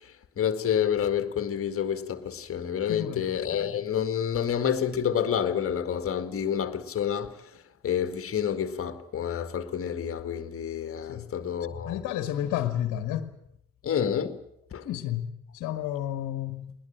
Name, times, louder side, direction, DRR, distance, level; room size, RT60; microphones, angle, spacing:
voice 1, 0.4-7.4 7.8-12.0 13.8-14.4 14.7-14.8, left 8 dB, 35° left, 1.9 m, -28 dB
voice 2, 2.9-3.3 11.1-11.3 11.8-13.3 14.8-16.7, left 11 dB, 50° left, 1.6 m, -31 dB
21.0 x 19.5 x 8.8 m
figure-of-eight pair, 55°, 39 cm